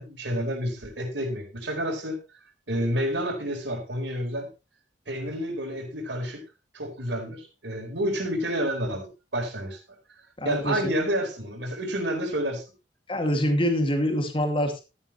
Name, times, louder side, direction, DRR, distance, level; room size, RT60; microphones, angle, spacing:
voice 1, 0.0-2.2 2.7-4.5 5.1-6.4 6.7-9.8 10.4-12.6, equal, 90° right, 2 dB, 4.3 m, -29 dB
voice 2, 10.4-10.9 13.1-14.8, equal, 30° left, 5 dB, 2.4 m, -25 dB
13.5 x 9.9 x 3.2 m, 0.27 s
head